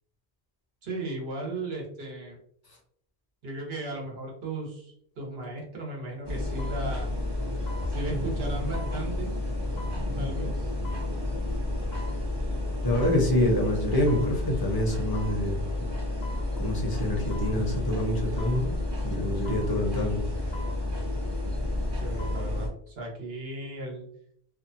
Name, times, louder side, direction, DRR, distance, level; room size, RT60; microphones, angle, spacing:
voice 1, 0.8-2.4 3.4-7.2 7.9-9.3 10.2-10.7 21.9-24.1, right 2 dB, 75° right, -1 dB, 1.1 m, -36 dB
sound 1, 5.4-5.6 6.6-6.8 7.7-7.9 8.7-9.0 9.8-10.0 10.8-11.1 11.9-12.2 13.0-13.3 14.1-14.3 15.1-15.4 16.2-16.5 17.3-17.6 18.4-18.6 19.4-19.7 20.5-20.8 22.0-22.4 22.9-23.0, equal, 85° left, 1.1 m, -44 dB
sound 2, 6.3-22.7, left 1 dB, 35° right, 0.5 m, -30 dB
voice 2, 12.8-15.6 16.6-18.7 19.0-20.2, left 1 dB, 30° left, -1 dB, 0.5 m, -26 dB
2.7 x 2.1 x 2.6 m, 0.65 s
omnidirectional pair, 1.0 m